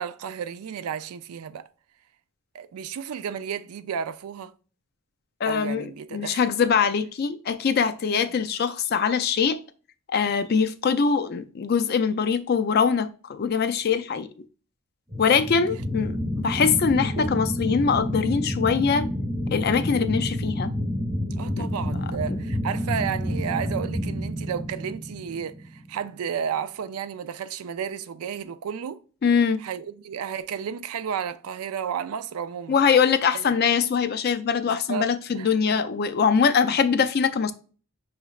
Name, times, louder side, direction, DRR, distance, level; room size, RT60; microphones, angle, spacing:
voice 1, 0.0-1.7 2.5-4.5 5.5-6.4 15.2-15.5 17.2-17.3 21.4-29.0 29.6-32.8 33.3-33.4 34.6-35.1 35.3-35.8 36.7-36.8, right 7 dB, 85° right, 0.4 m, -32 dB
voice 2, 5.4-9.6 10.1-14.3 15.2-19.1 19.5-20.7 21.6-21.7 29.2-29.6 32.7-37.5, left 6 dB, 45° left, 0.3 m, -23 dB
sound 1, 15.1-26.0, equal, 30° right, 1.0 m, -29 dB
5.7 x 3.1 x 2.3 m
head